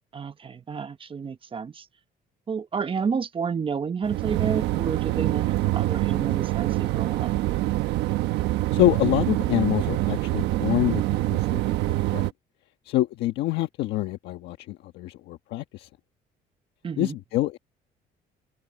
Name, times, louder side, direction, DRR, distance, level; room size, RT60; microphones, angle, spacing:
voice 1, 0.1-1.9 2.5-7.3 16.8-17.1, right 6 dB, 30° right, 1.1 m, -30 dB
sound 1, 4.0-12.3, right 16 dB, 85° right, 1.2 m, -25 dB
voice 2, 8.7-11.0 11.3-11.6 11.9-12.3 12.9-15.9 17.0-17.6, left 15 dB, 80° left, 1.4 m, -26 dB
open air
cardioid pair, 110°, 17 cm